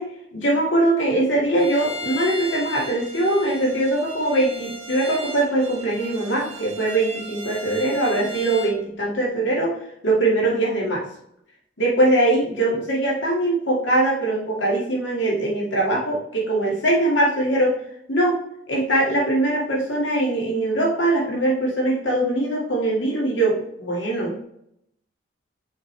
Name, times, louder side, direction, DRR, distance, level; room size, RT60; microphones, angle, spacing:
voice 1, 0.3-9.7 10.0-11.0 11.8-17.7 18.1-18.4 18.7-24.4, right 1 dB, 80° left, -3 dB, 2.3 m, -22 dB
Bowed string instrument, 1.6-8.8, right 1 dB, 35° right, 1.1 m, -36 dB
6.4 x 5.0 x 3.4 m, 0.72 s
head